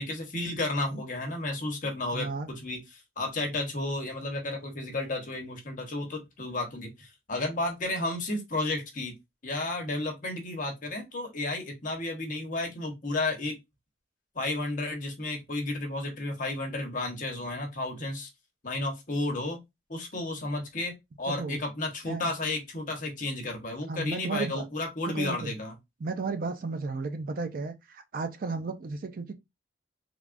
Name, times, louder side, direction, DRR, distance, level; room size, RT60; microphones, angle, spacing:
voice 1, 0.0-9.1 9.4-13.5 14.3-18.3 18.6-19.6 19.9-25.7, left 2 dB, 45° left, 1.0 m, -32 dB
voice 2, 2.1-2.5 21.3-21.6 22.1-22.2 23.9-24.6 25.1-25.5 26.0-29.3, right 4 dB, 50° right, 0.4 m, -33 dB
3.4 x 2.4 x 2.5 m
head